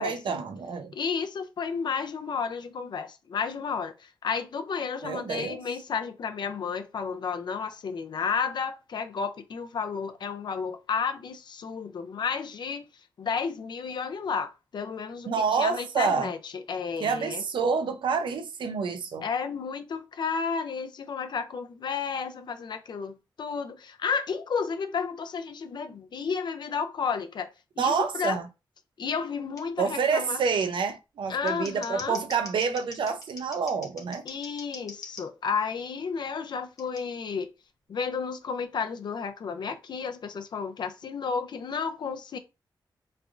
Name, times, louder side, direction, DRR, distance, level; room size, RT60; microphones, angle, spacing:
voice 1, 0.0-0.9 5.0-5.6 15.3-16.3 17.0-19.2 27.8-28.5 29.8-34.2, right 5 dB, 90° right, 0.5 m, -28 dB
voice 2, 0.9-12.9 13.2-17.4 19.2-27.5 27.8-28.4 29.0-30.4 31.3-32.2 34.3-37.5 37.9-42.4, left 6 dB, 65° left, 0.5 m, -32 dB
Scissors, 29.6-29.7 30.6-30.7 31.3-35.3 36.8-37.0, left 3 dB, 45° left, 0.9 m, -44 dB
3.5 x 3.3 x 2.5 m
wide cardioid pair, 145°, 8 cm